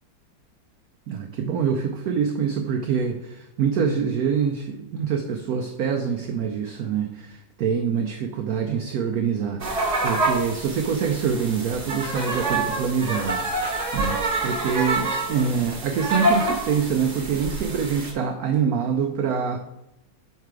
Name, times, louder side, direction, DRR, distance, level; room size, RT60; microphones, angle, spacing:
voice 1, 1.1-13.4 13.9-19.6, right 6 dB, 90° right, 5 dB, 0.8 m, -25 dB
sound 1, 9.6-18.1, right 2 dB, 35° right, 0.7 m, -27 dB
5.8 x 4.6 x 4.6 m, 0.90 s
omnidirectional pair, 2.1 m